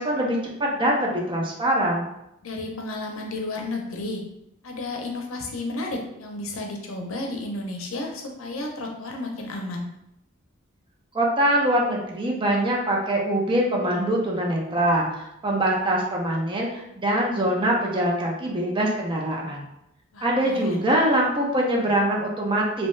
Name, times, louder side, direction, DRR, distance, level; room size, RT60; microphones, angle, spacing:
voice 1, 0.0-2.1 11.1-19.6 20.2-22.9, right 1 dB, 25° right, -2 dB, 0.6 m, -23 dB
voice 2, 2.4-4.2 4.6-9.9 20.1-20.9, left 2 dB, 75° left, 1 dB, 0.6 m, -32 dB
2.7 x 2.2 x 3.1 m, 0.82 s
head